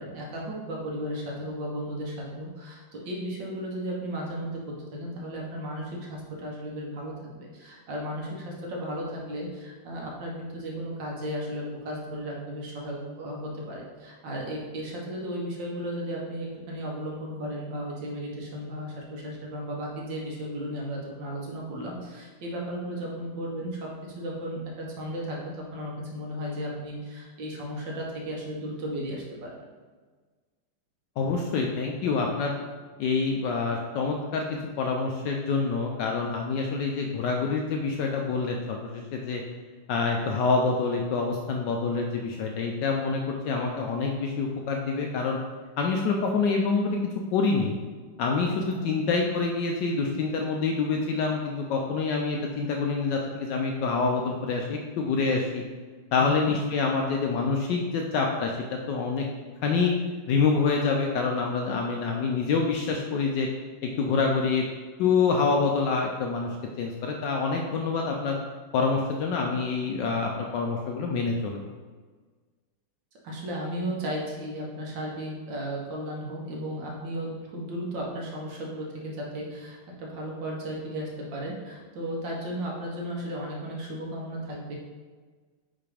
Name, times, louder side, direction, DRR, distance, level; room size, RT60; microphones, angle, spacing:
voice 1, 0.0-29.5 48.4-48.9 56.2-56.5 73.2-84.8, equal, 65° right, -2 dB, 1.7 m, -35 dB
voice 2, 31.2-32.5 33.0-34.5 34.8-39.4 39.9-45.4 45.8-47.0 47.3-47.7 48.2-55.6 56.1-59.2 59.6-59.9 60.3-63.5 63.8-64.6 65.0-66.5 66.8-68.4 68.7-71.7, left 4 dB, 75° left, 1 dB, 1.0 m, -26 dB
5.9 x 3.2 x 4.9 m, 1.4 s
omnidirectional pair, 2.3 m